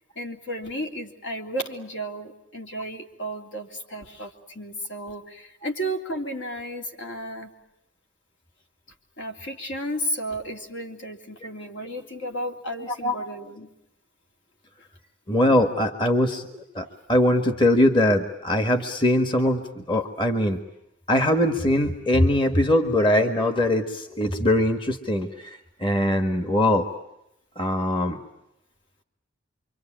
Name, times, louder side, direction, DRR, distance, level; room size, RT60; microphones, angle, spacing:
voice 1, 0.2-7.5 9.2-13.7, right 1 dB, 65° left, 2 dB, 3.3 m, -33 dB
voice 2, 15.3-20.6 21.1-26.9 27.6-28.2, left 1 dB, 25° left, 7 dB, 1.6 m, -22 dB
27.0 x 25.0 x 8.8 m, 0.83 s
head